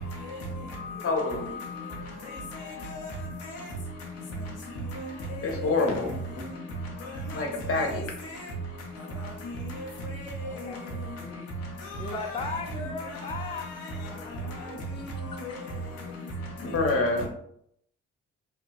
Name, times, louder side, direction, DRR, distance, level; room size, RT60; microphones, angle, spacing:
voice 1, 0.1-3.2 3.5-3.7 4.9-5.9 6.4-6.6 7.0-7.4 7.8-7.9 8.2-8.5 9.1-9.9 10.2-10.8 11.8-12.6 13.0-14.1 14.5-14.6 14.9-15.6 16.0-16.1, equal, 90° left, 0.6 m, -37 dB
voice 2, 1.0-1.5 5.4-6.1 7.3-8.0 16.6-17.3, left 3 dB, 40° left, 0.8 m, -26 dB
voice 3, 10.4-11.5 12.0-13.7 14.0-15.1 15.3-15.6, left 4 dB, 15° left, 0.4 m, -38 dB
2.8 x 2.2 x 2.4 m
hypercardioid pair, 45°, 35 cm